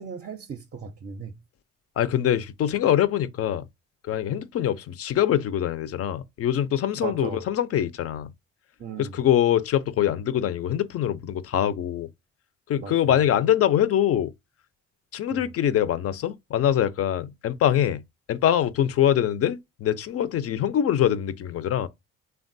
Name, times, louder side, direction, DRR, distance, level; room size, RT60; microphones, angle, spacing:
voice 1, 0.0-1.3 7.0-7.4 8.8-9.2 12.8-12.9 15.3-15.5, right 5 dB, 35° right, 0.5 m, -36 dB
voice 2, 2.0-3.6 4.1-8.3 9.0-12.1 12.7-14.3 15.1-18.0 18.3-21.9, left 10 dB, 50° left, 0.4 m, -24 dB
3.3 x 2.2 x 2.5 m
cardioid pair, 90°, 30 cm